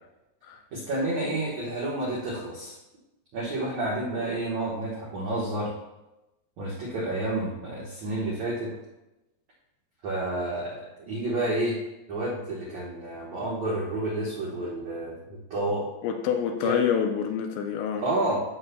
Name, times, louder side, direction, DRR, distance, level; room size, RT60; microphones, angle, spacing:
voice 1, 0.7-2.8 3.3-5.7 6.6-8.7 10.0-11.8 12.1-15.9 16.6-16.8 18.0-18.4, right 1 dB, 75° right, -6 dB, 1.6 m, -30 dB
voice 2, 16.0-18.0, left 8 dB, 80° left, 5 dB, 2.6 m, -27 dB
14.0 x 6.7 x 2.3 m, 0.98 s
omnidirectional pair, 5.4 m